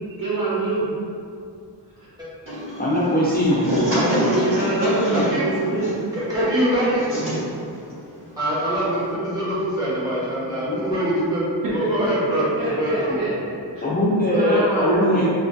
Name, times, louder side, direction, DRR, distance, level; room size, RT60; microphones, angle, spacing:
voice 1, 0.2-0.9 4.4-5.9 11.6-13.4 13.7-13.9 14.3-15.3, right 2 dB, 50° right, -9 dB, 1.0 m, -25 dB
sound 1, 2.4-9.1, right 1 dB, 30° right, 1.4 m, -27 dB
voice 2, 2.8-3.6 13.8-15.3, left 1 dB, 25° left, -9 dB, 0.4 m, -20 dB
voice 3, 3.9-4.6 5.1-5.4 6.1-7.1 8.4-11.4 11.7-12.4 12.7-13.2, equal, 10° right, -11 dB, 1.0 m, -24 dB
3.2 x 2.3 x 2.5 m, 2.4 s
wide cardioid pair, 105°, 42 cm